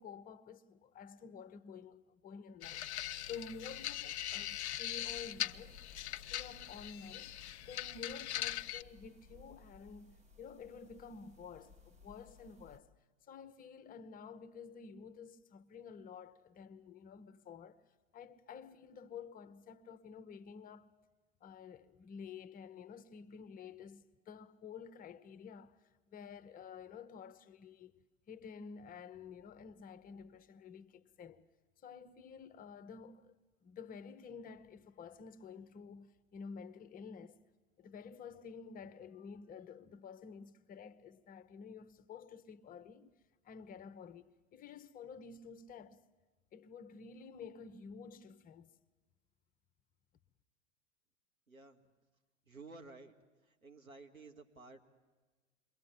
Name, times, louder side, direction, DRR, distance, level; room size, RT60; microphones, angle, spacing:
voice 1, 0.0-5.8 6.3-12.9 13.2-17.8 18.1-20.9 21.4-27.9 28.3-31.4 31.8-33.4 33.6-37.4 37.8-43.2 43.4-46.0 46.5-48.7, left 6 dB, 20° left, 0.8 m, -51 dB
sound 1, 2.6-8.8, left 12 dB, 55° left, 0.7 m, -41 dB
sound 2, 5.1-12.8, left 3 dB, 15° right, 1.2 m, -61 dB
voice 2, 51.5-51.9 52.5-53.1 53.4-54.8, right 3 dB, 85° right, 2.3 m, -54 dB
28.5 x 22.0 x 8.3 m
figure-of-eight pair, 90°, 41 cm